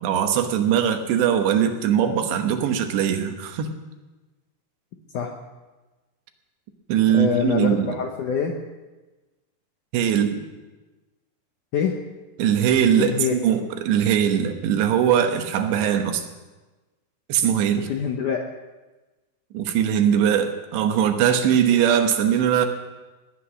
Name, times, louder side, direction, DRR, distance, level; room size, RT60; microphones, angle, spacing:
voice 1, 0.0-3.7 6.9-7.9 9.9-10.4 12.4-16.3 17.3-17.9 19.5-22.7, right 9 dB, 85° right, 6 dB, 3.4 m, -21 dB
voice 2, 7.1-8.6 11.7-12.0 12.9-13.3 17.9-18.4, left 7 dB, 75° left, 2 dB, 1.9 m, -24 dB
18.5 x 10.5 x 6.2 m, 1.2 s
omnidirectional pair, 5.0 m